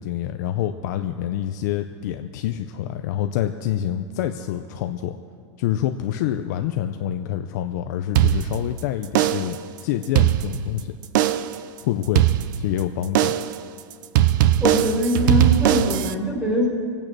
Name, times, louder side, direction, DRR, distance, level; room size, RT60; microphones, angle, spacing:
voice 1, 0.0-5.2 5.6-11.0 11.8-12.3 12.6-13.3, left 11 dB, 35° left, 7 dB, 0.5 m, -27 dB
sound 1, 8.1-8.8 9.1-9.6 10.0-10.8 11.1-11.6 12.1-12.8 13.1-13.6 14.1-16.1, right 12 dB, 40° right, 0.5 m, -20 dB
voice 2, 14.6-16.7, left 1 dB, 5° right, -2 dB, 2.4 m, -22 dB
24.0 x 8.8 x 6.1 m, 2.2 s
supercardioid pair, 180°, 16 cm